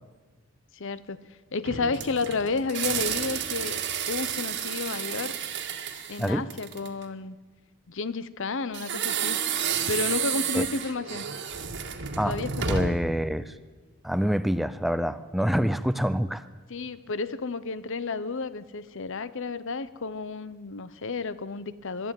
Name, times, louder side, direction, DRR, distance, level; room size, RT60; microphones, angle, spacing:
voice 1, 0.7-1.2 1.5-3.8 4.1-5.3 6.1-7.4 7.9-9.4 9.9-11.3 12.2-13.0 16.7-22.1, left 4 dB, 60° left, 16 dB, 0.8 m, -31 dB
sound 1, 1.7-7.0 8.7-13.1, right 7 dB, 55° right, 1.9 m, -31 dB
voice 2, 12.7-13.5 14.0-16.4, equal, ahead, 14 dB, 0.5 m, -26 dB
22.5 x 13.0 x 9.2 m, 1.3 s
head